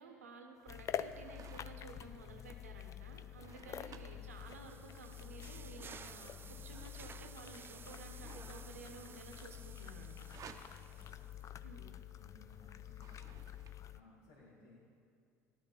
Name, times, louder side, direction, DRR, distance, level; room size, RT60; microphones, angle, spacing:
voice 1, 0.0-10.2 11.6-12.0, right 3 dB, 90° right, 4 dB, 1.1 m, -54 dB
sound 1, 0.6-13.7, right 6 dB, 45° right, 0.9 m, -61 dB
sound 2, 0.7-14.0, left 10 dB, 45° left, 0.5 m, -48 dB
sound 3, 3.9-11.5, right 7 dB, 30° right, 0.3 m, -56 dB
voice 2, 10.9-11.3 12.2-14.9, left 2 dB, 75° left, -7 dB, 2.5 m, -63 dB
14.5 x 11.5 x 4.1 m, 2.4 s
hypercardioid pair, 65°, 8 cm